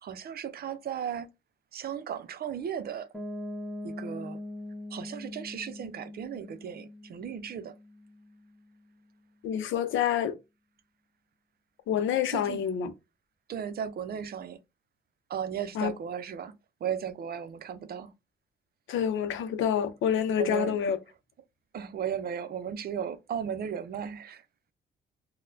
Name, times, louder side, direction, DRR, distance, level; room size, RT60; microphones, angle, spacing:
voice 1, 0.0-1.3 1.7-3.1 3.8-4.4 4.9-7.7 12.3-12.6 13.5-14.6 15.3-16.5 16.8-18.1 20.4-20.8 21.7-24.4, right 8 dB, 50° right, 0.5 m, -35 dB
Piano, 3.1-8.8, left 1 dB, ahead, 1.0 m, -42 dB
voice 2, 9.4-10.3 11.9-12.9 15.8-15.9 18.9-21.0, left 8 dB, 80° left, 0.6 m, -27 dB
4.0 x 2.1 x 2.6 m
cardioid pair, 90°, 20 cm